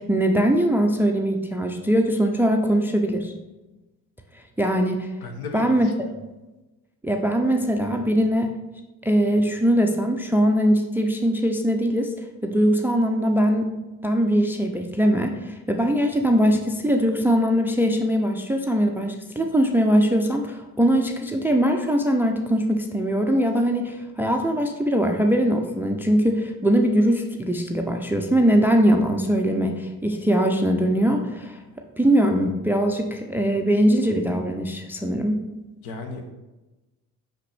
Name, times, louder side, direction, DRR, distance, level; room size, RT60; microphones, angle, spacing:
voice 1, 0.0-3.3 4.6-5.1 5.5-5.9 7.0-8.5 9.0-12.1 12.4-13.7 14.0-31.6 32.0-35.4, equal, 5° right, 4 dB, 0.4 m, -21 dB
voice 2, 5.2-5.9 35.8-36.3, left 3 dB, 60° left, 4 dB, 1.0 m, -35 dB
5.7 x 5.2 x 3.3 m, 1.1 s
figure-of-eight pair, 50°, 43 cm